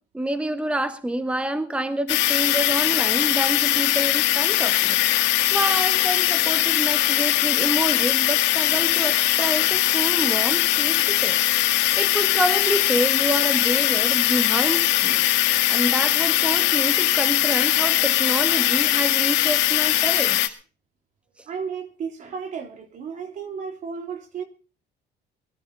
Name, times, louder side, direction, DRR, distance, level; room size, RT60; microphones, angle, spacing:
voice 1, 0.1-11.4 11.7-15.2 15.7-20.5, right 1 dB, 5° right, 1.6 m, -28 dB
sound 1, 2.1-20.5, left 15 dB, 85° left, 1.9 m, -21 dB
voice 2, 21.5-24.4, right 6 dB, 45° right, 3.1 m, -33 dB
21.5 x 13.5 x 4.0 m
cardioid pair, 165°, 18 cm